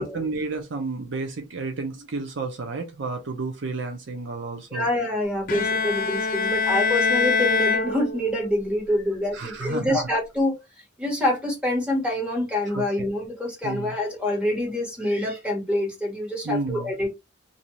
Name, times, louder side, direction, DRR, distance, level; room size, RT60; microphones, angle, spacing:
voice 1, 0.0-4.9 9.3-10.0 12.7-12.8 13.6-14.0 16.4-16.9, right 3 dB, 65° right, 0.6 m, -31 dB
voice 2, 4.7-10.5 11.0-17.1, left 1 dB, 5° right, 1.1 m, -26 dB
Bowed string instrument, 5.5-8.6, left 4 dB, 45° left, 0.7 m, -24 dB
2.7 x 2.4 x 3.0 m
head